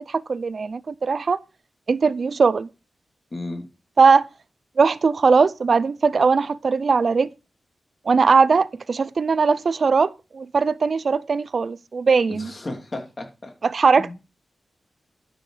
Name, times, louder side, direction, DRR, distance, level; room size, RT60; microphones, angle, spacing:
voice 1, 0.0-1.4 1.9-2.7 4.0-4.3 4.8-7.3 8.1-12.5 13.6-14.1, right 5 dB, 50° right, 0.5 m, -19 dB
voice 2, 3.3-3.6 12.3-13.5 14.0-14.1, left 2 dB, 30° left, 2.8 m, -33 dB
12.5 x 6.3 x 4.8 m
wide cardioid pair, 120°, 0 cm